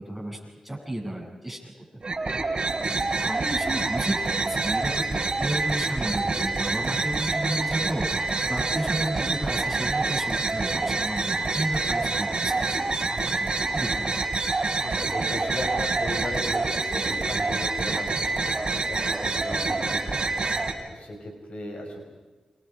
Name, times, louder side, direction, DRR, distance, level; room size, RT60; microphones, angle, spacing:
voice 1, 0.0-1.7 3.2-14.4, right 1 dB, 5° right, -1 dB, 8.0 m, -33 dB
sound 1, 2.0-20.7, right 3 dB, 45° right, 3.8 m, -27 dB
voice 2, 2.8-3.2 14.7-22.0, left 1 dB, 60° left, 2 dB, 5.9 m, -37 dB
28.5 x 26.0 x 5.0 m, 1.2 s
cardioid pair, 55°, 2 cm